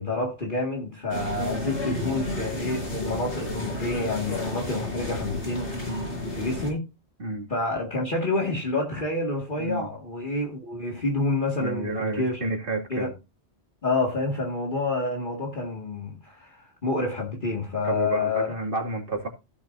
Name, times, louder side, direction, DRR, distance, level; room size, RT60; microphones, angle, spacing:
voice 1, 0.0-6.1 6.3-6.8 7.5-12.4 12.9-13.1 13.8-18.5, left 2 dB, 45° left, 2.1 m, -28 dB
sound 1, 1.1-6.7, left 1 dB, 85° left, 4.9 m, -32 dB
voice 2, 9.6-9.9 11.6-13.1 17.8-19.3, right 2 dB, 55° right, 2.6 m, -30 dB
16.0 x 7.2 x 2.6 m
omnidirectional pair, 1.2 m